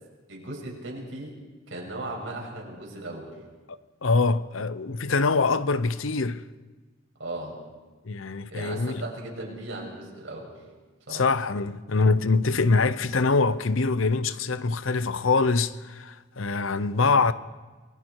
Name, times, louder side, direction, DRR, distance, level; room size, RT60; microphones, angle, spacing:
voice 1, 0.3-1.4 1.7-3.4 7.2-7.6 8.5-10.6 11.1-11.3, right 2 dB, 70° right, 6.7 m, -37 dB
voice 2, 4.0-6.4 8.0-9.0 11.1-17.3, left 4 dB, 85° left, 0.8 m, -24 dB
28.0 x 20.5 x 4.7 m
head